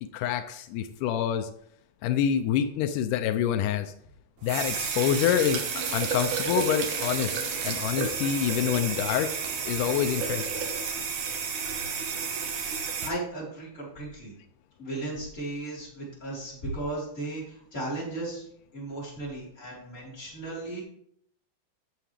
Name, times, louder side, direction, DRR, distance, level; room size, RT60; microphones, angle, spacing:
voice 1, 0.1-1.5 2.0-3.9 4.4-5.6 5.9-7.4 7.6-9.3 9.7-10.5, left 9 dB, 85° left, 8 dB, 2.2 m, -26 dB
sound 1, 4.4-13.1, right 6 dB, 70° right, 2.7 m, -31 dB
voice 2, 12.4-12.7 13.0-14.3 14.8-18.4 18.7-20.8, right 2 dB, 25° left, -7 dB, 4.7 m, -36 dB
15.0 x 7.2 x 3.4 m, 0.71 s
omnidirectional pair, 3.6 m